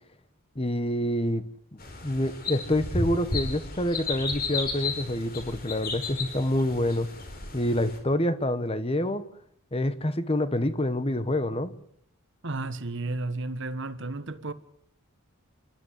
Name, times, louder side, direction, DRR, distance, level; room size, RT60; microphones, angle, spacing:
voice 1, 0.5-1.4 1.7-7.1 7.5-9.2 9.7-11.7, left 1 dB, 25° left, 1.3 m, -27 dB
sound 1, 1.8-8.0, left 3 dB, 45° left, 4.5 m, -33 dB
voice 2, 12.4-14.5, right 2 dB, 55° right, 1.4 m, -33 dB
29.0 x 12.5 x 9.9 m
head